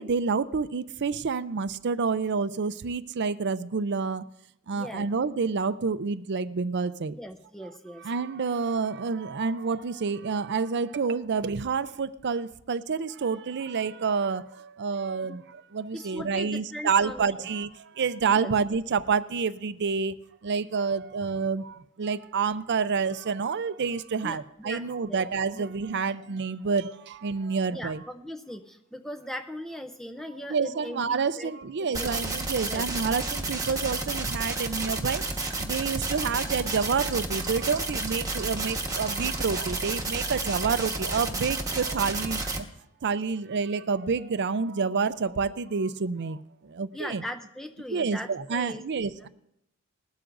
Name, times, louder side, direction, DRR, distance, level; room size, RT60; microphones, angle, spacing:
voice 1, 0.0-4.3 4.7-7.2 8.0-20.2 20.4-28.0 30.3-42.7 43.0-47.2 47.9-49.3, right 5 dB, 55° right, 0.5 m, -28 dB
voice 2, 4.7-5.1 7.1-8.1 15.2-15.4 15.9-17.5 18.3-18.5 24.2-25.3 25.5-25.7 27.7-31.5 32.0-32.1 32.7-32.8 41.7-41.8 46.9-49.3, equal, ahead, 0.5 m, -39 dB
sound 1, 31.9-42.6, right 2 dB, 15° right, 1.3 m, -31 dB
20.5 x 12.5 x 2.6 m
head